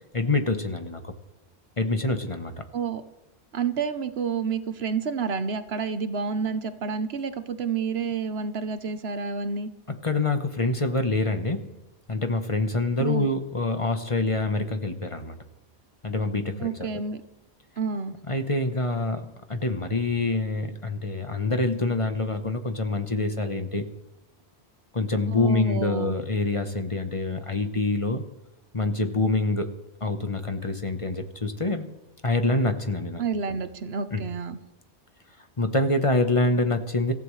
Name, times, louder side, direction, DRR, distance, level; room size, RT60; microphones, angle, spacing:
voice 1, 0.1-1.1 1.8-2.6 10.0-11.7 12.1-15.4 16.0-17.0 18.3-23.8 24.9-28.2 28.7-29.7 30.0-31.9 32.2-33.2 33.5-33.6 34.1-34.2 35.6-37.1, left 2 dB, 30° left, 7 dB, 1.1 m, -26 dB
voice 2, 3.5-9.7 13.0-13.3 16.6-17.2 17.8-18.2 25.3-26.1 33.2-34.6, right 5 dB, 65° right, 11 dB, 1.1 m, -29 dB
26.0 x 15.0 x 3.2 m, 0.90 s
omnidirectional pair, 1.1 m